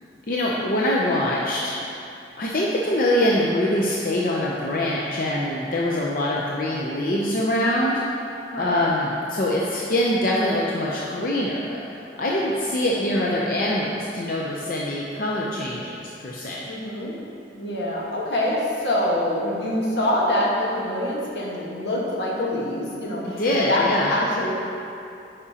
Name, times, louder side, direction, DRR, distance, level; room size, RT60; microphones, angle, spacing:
voice 1, 0.3-2.0 2.4-8.0 8.6-16.8 23.2-24.1, left 1 dB, 50° left, -4 dB, 0.5 m, -24 dB
voice 2, 8.5-8.8 16.7-17.2 17.6-24.5, left 1 dB, 80° left, -5 dB, 1.4 m, -25 dB
9.5 x 5.0 x 2.8 m, 2.6 s
head